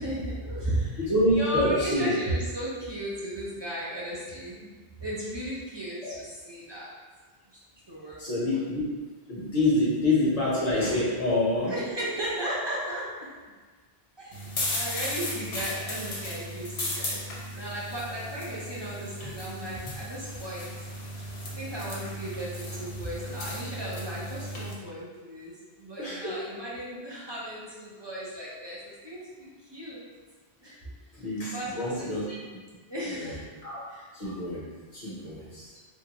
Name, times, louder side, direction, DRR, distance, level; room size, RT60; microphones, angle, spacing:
voice 1, 0.0-4.7 5.0-6.9 7.5-7.6 7.9-8.2 8.5-8.7 11.7-13.3 14.2-20.7 21.6-30.0 30.6-30.9 31.5-32.2 32.9-33.5 33.9-34.1 35.0-35.2, right 1 dB, 30° right, -7 dB, 0.6 m, -35 dB
voice 2, 1.0-2.1 6.0-6.1 8.2-9.0 9.3-11.7 26.0-26.4 31.1-32.2 33.2-33.3 33.6-33.8 34.1-35.7, left 1 dB, 40° left, -8 dB, 1.0 m, -27 dB
sound 1, 14.3-24.7, left 1 dB, 80° left, 1.0 m, -36 dB
3.6 x 2.2 x 2.9 m, 1.4 s
omnidirectional pair, 1.1 m